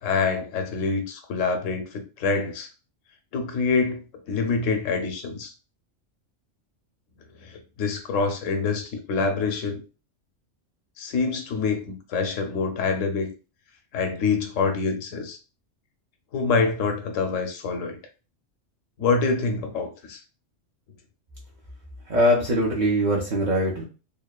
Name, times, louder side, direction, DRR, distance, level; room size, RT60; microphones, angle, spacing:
voice 1, 0.0-2.7 3.3-5.5 7.4-9.8 11.0-13.3 13.9-15.4 16.3-18.0 19.0-20.2, left 4 dB, 80° left, 6 dB, 0.9 m, -26 dB
voice 2, 22.1-23.8, equal, 55° right, -3 dB, 0.5 m, -22 dB
2.8 x 2.1 x 2.2 m, 0.33 s
omnidirectional pair, 1.3 m